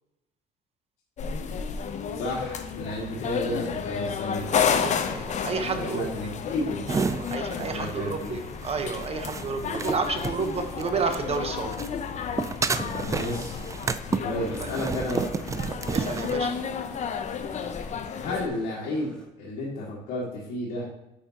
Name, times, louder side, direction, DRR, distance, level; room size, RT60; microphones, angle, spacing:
sound 1, 1.2-18.5, left 7 dB, 45° left, 0.6 m, -32 dB
voice 1, 2.1-4.5 5.7-6.8 7.5-8.4 13.0-13.6 14.2-15.3 18.2-20.9, left 1 dB, 85° left, -6 dB, 1.8 m, -32 dB
voice 2, 4.8-6.1 7.2-11.8 14.6-14.7 15.9-16.5, right 5 dB, 35° right, 6 dB, 1.0 m, -30 dB
sound 2, 6.9-11.4 11.7-16.4, right 5 dB, 20° right, 0.3 m, -31 dB
sound 3, 13.7-19.3, equal, 5° left, 1.5 m, -49 dB
8.8 x 5.5 x 2.9 m, 0.90 s
cardioid pair, 110°, 17 cm